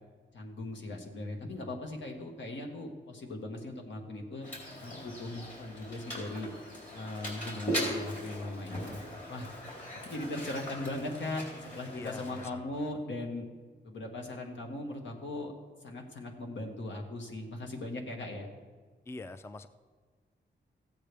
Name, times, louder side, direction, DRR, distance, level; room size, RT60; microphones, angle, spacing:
voice 1, 0.3-4.5 4.8-6.5 6.9-9.0 9.3-9.5 9.9-13.4 13.8-15.5 15.8-18.5, left 2 dB, 80° left, 2 dB, 1.6 m, -39 dB
Mechanisms, 4.4-12.5, equal, 45° left, 3.8 m, -40 dB
voice 2, 12.0-12.8 19.1-19.7, left 2 dB, 15° left, 12 dB, 0.3 m, -44 dB
15.0 x 8.8 x 3.4 m, 1.5 s
wide cardioid pair, 115°, 19 cm